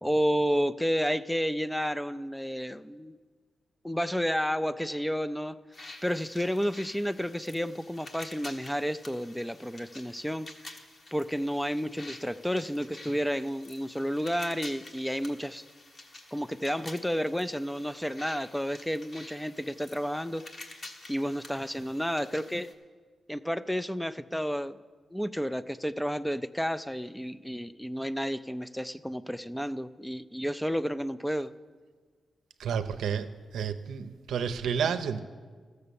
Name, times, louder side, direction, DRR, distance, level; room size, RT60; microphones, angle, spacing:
voice 1, 0.0-3.2 3.8-5.6 6.0-10.5 11.1-15.6 16.3-20.4 21.1-22.7 23.3-24.8 25.1-31.5, equal, 5° left, 14 dB, 0.4 m, -31 dB
sound 1, 5.7-22.7, left 2 dB, 45° left, 1.3 m, -49 dB
voice 2, 32.6-33.3 33.5-35.2, right 7 dB, 90° right, 9 dB, 0.6 m, -30 dB
14.0 x 6.6 x 6.9 m, 1.5 s
cardioid pair, 70°, 0 cm